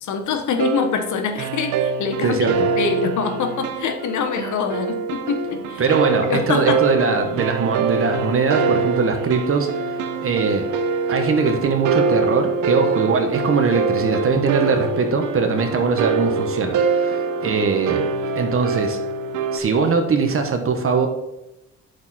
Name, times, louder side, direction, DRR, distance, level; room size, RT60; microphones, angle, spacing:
voice 1, 0.0-2.5 2.8-5.8 6.3-6.8, left 6 dB, 75° left, 7 dB, 1.2 m, -24 dB
sound 1, 0.6-19.6, right 5 dB, 85° right, 0.8 m, -24 dB
voice 2, 2.2-2.7 5.8-9.7 10.2-10.7 11.1-18.0 18.3-19.0 19.5-21.1, right 4 dB, 45° right, 5 dB, 1.3 m, -21 dB
8.5 x 6.5 x 4.3 m, 0.94 s
cardioid pair, 90°, 30 cm